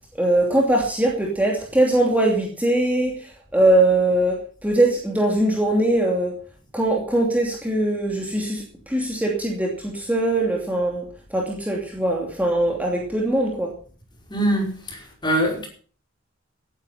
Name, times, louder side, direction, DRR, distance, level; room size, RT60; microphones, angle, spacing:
voice 1, 0.2-6.3 6.7-13.7, right 1 dB, 10° right, 2.7 m, -21 dB
voice 2, 14.3-15.7, right 1 dB, 20° left, 5.1 m, -23 dB
17.0 x 10.0 x 5.8 m
head